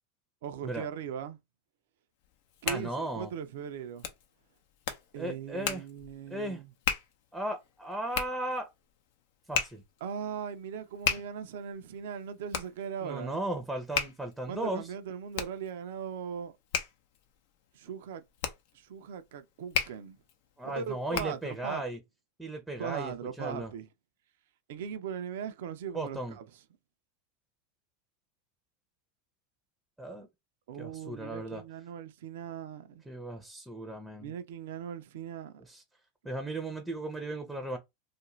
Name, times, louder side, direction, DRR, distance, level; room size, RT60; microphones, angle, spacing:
voice 1, 0.4-1.4 2.6-4.1 5.1-6.7 10.0-13.5 14.5-16.5 17.7-18.2 18.7-20.2 20.6-21.8 22.8-23.9 24.7-26.4 30.7-33.0 34.2-35.6, right 7 dB, 70° right, 0.4 m, -39 dB
Hands, 2.2-21.6, left 7 dB, 65° left, 0.6 m, -37 dB
voice 2, 2.6-3.3 5.2-5.8 6.3-6.6 7.3-8.7 9.5-9.8 13.0-14.9 20.6-22.0 22.4-23.7 25.9-26.4 30.0-30.3 30.8-31.6 33.1-34.3 35.6-35.8 36.2-37.8, right 1 dB, 5° right, 0.6 m, -36 dB
2.4 x 2.2 x 3.1 m
hypercardioid pair, 95°, 0 cm